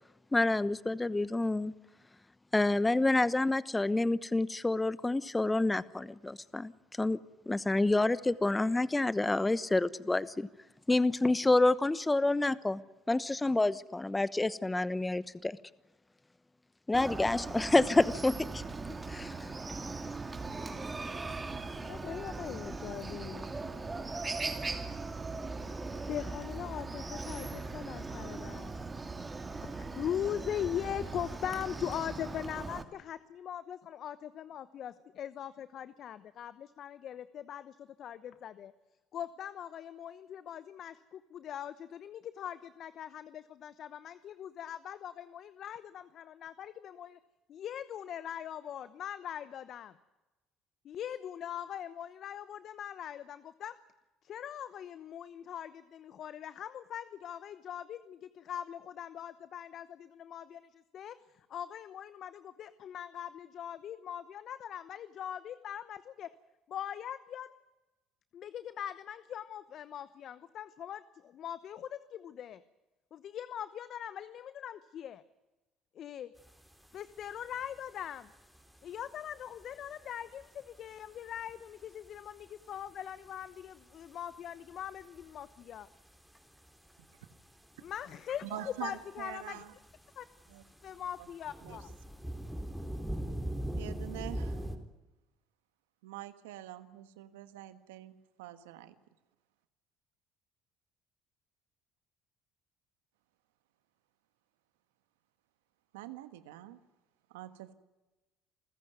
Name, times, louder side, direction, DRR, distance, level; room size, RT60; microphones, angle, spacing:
voice 1, 0.3-1.7 2.5-6.7 7.0-7.2 7.5-10.5 10.9-12.8 13.1-15.6 16.9-18.6 19.1-19.5, left 2 dB, 15° left, 17 dB, 1.0 m, -28 dB
Chicken rooster, 16.9-32.8, right 3 dB, 25° right, 2.5 m, -39 dB
voice 2, 21.9-23.5 26.1-28.7 29.6-38.7 39.1-47.2 47.5-49.9 50.8-53.8 54.2-61.2 61.5-66.3 66.7-67.5 68.3-72.6 73.1-75.2 75.9-76.3 76.9-78.3 78.8-85.9 87.8-89.6 90.2-90.3 90.8-91.9, left 10 dB, 55° left, 14 dB, 0.9 m, -41 dB
sound 1, 76.4-94.8, right 1 dB, ahead, 4.0 m, -42 dB
voice 3, 88.4-89.7 90.5-90.6 91.2-91.3 91.6-91.8 93.8-94.8 96.0-99.0 105.9-106.8 107.3-107.7, right 14 dB, 90° right, 11 dB, 1.4 m, -45 dB
28.0 x 15.0 x 9.4 m, 1.1 s
hypercardioid pair, 65°, 0 cm